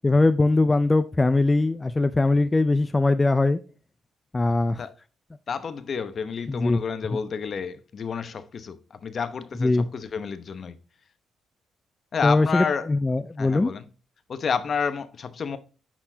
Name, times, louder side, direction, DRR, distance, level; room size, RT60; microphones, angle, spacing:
voice 1, 0.0-3.6 4.3-4.8 6.5-6.8 7.1-7.2 9.6-9.9 12.2-13.7, left 2 dB, 20° left, 0.5 m, -21 dB
voice 2, 5.5-10.8 12.1-12.9 13.4-13.8 14.3-15.6, left 6 dB, 50° left, 0.9 m, -30 dB
10.0 x 4.4 x 2.8 m
cardioid pair, 90°, 0 cm